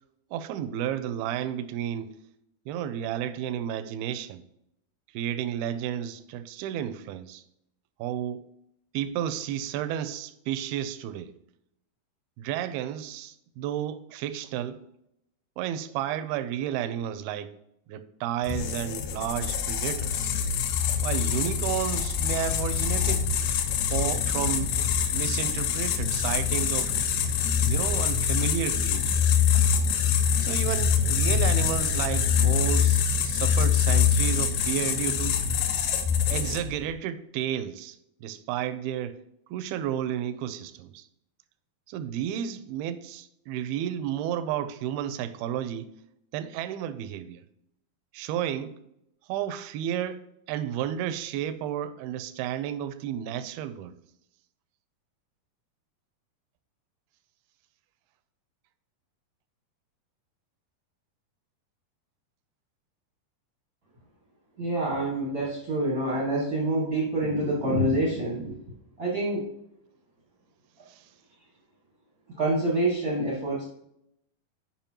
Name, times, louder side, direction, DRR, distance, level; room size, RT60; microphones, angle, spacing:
voice 1, 0.3-2.1 2.7-4.4 5.1-7.4 8.0-8.5 8.9-11.3 12.4-14.8 15.6-17.5 17.9-20.3 21.0-23.3 23.9-24.8 25.1-26.9 27.6-29.4 30.4-35.5 36.3-38.0 38.2-39.2 39.5-41.1 41.9-45.9 46.3-47.4 48.1-48.8 49.3-50.2 50.5-53.9 70.9-71.1, right 10 dB, 90° right, 2.5 m, -32 dB
sound 1, 18.4-36.8, left 7 dB, 90° left, 2.6 m, -25 dB
voice 2, 64.6-68.6 69.0-69.5 72.3-73.6, right 1 dB, 65° right, 0.8 m, -26 dB
8.8 x 5.5 x 2.9 m
omnidirectional pair, 4.3 m